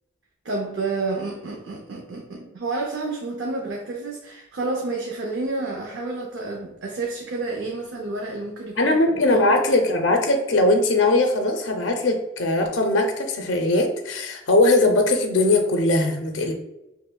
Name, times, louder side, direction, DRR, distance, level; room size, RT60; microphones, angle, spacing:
voice 1, 0.4-9.6, right 3 dB, 70° right, 0 dB, 0.5 m, -30 dB
voice 2, 8.8-16.5, left 2 dB, 75° left, 4 dB, 0.5 m, -20 dB
5.5 x 2.0 x 2.2 m, 0.92 s
head